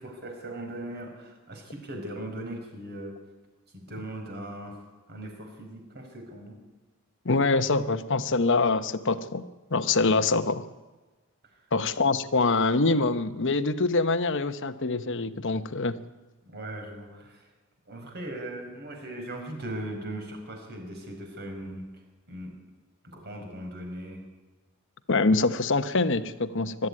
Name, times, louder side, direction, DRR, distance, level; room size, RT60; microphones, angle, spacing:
voice 1, 0.0-3.1 3.7-4.8 5.1-6.6 16.4-17.5 17.9-21.8 22.3-22.5 23.0-24.2, right 1 dB, 45° right, 3 dB, 4.9 m, -39 dB
voice 2, 7.2-10.6 11.7-16.0 25.1-26.9, left 3 dB, 55° left, 11 dB, 1.0 m, -25 dB
22.0 x 13.0 x 9.6 m, 1.2 s
head